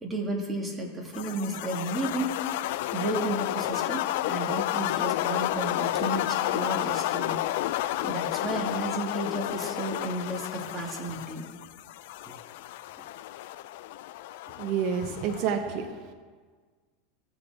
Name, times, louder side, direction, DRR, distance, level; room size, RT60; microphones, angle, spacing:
voice 1, 0.0-2.4 2.9-7.4 8.0-11.4 12.2-12.3, right 2 dB, 15° right, 0 dB, 2.0 m, -33 dB
sound 1, 1.1-15.5, left 14 dB, 70° left, 0.3 m, -31 dB
voice 2, 14.6-16.1, right 7 dB, 50° right, 6 dB, 0.9 m, -29 dB
16.0 x 7.1 x 3.6 m, 1.5 s
supercardioid pair, 130°, 0 cm